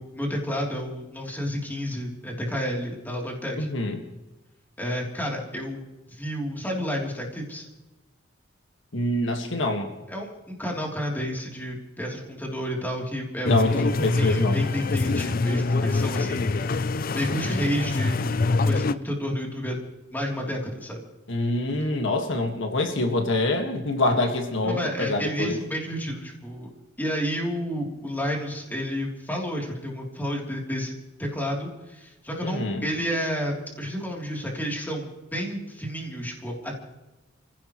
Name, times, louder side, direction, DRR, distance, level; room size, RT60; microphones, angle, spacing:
voice 1, 0.0-3.7 4.8-7.7 10.1-13.5 14.1-18.3 18.6-19.8 20.1-21.0 24.6-26.7 27.0-36.7, equal, 10° left, -1 dB, 3.3 m, -31 dB
voice 2, 3.6-4.0 8.9-9.9 13.4-14.6 15.2-15.3 21.3-25.6 32.4-32.9, left 2 dB, 70° left, 4 dB, 1.9 m, -25 dB
sound 1, 13.4-18.9, left 3 dB, 50° left, 0.5 m, -25 dB
27.5 x 16.0 x 3.2 m, 1.0 s
head